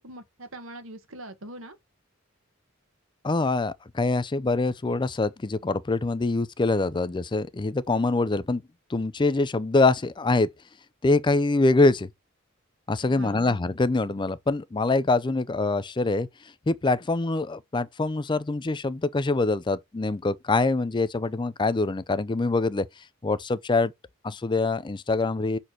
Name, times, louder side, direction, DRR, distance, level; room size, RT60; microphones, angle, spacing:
voice 1, 0.0-1.8 13.0-13.6, right 1 dB, 75° right, 1.4 m, -42 dB
voice 2, 3.2-8.6 8.9-10.5 11.0-12.1 12.9-16.3 16.7-22.9 23.2-23.9 24.2-25.6, left 3 dB, 25° left, 0.4 m, -24 dB
6.5 x 4.2 x 4.4 m
head